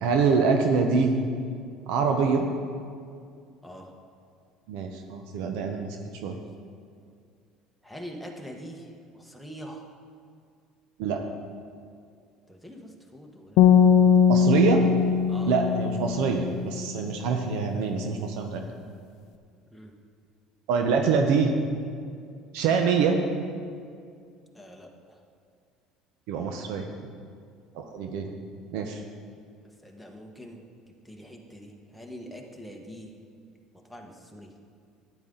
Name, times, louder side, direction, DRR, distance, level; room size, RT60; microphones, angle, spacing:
voice 1, 0.0-1.1 1.9-2.5 4.7-6.0 6.2-6.4 11.0-11.2 14.3-14.9 15.5-18.6 20.7-21.5 22.5-23.2 26.3-26.8 27.7-28.3 28.7-29.0, right 5 dB, 75° right, 4 dB, 0.8 m, -25 dB
voice 2, 7.8-8.8 9.2-9.8 12.5-13.6 13.9-14.1 15.3-15.5 19.7-19.9 24.5-24.9 28.0-28.1 29.8-30.6 31.1-33.1 33.9-34.5, equal, ahead, 1 dB, 1.2 m, -43 dB
sound 1, 13.6-16.8, left 7 dB, 65° left, 0.6 m, -20 dB
12.0 x 9.1 x 3.9 m, 2.2 s
cardioid pair, 125°, 0 cm